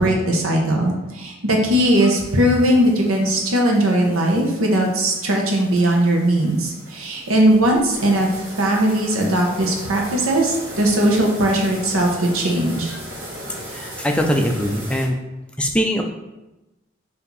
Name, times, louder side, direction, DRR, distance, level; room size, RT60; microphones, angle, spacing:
voice 1, 0.0-8.3 8.6-12.9, right 1 dB, 90° right, 0 dB, 0.9 m, -19 dB
sound 1, 1.8-15.1, right 1 dB, 65° right, 1.2 m, -38 dB
voice 2, 13.7-15.2 15.6-16.0, equal, 5° left, 1 dB, 0.3 m, -21 dB
4.5 x 2.7 x 4.0 m, 1.0 s
head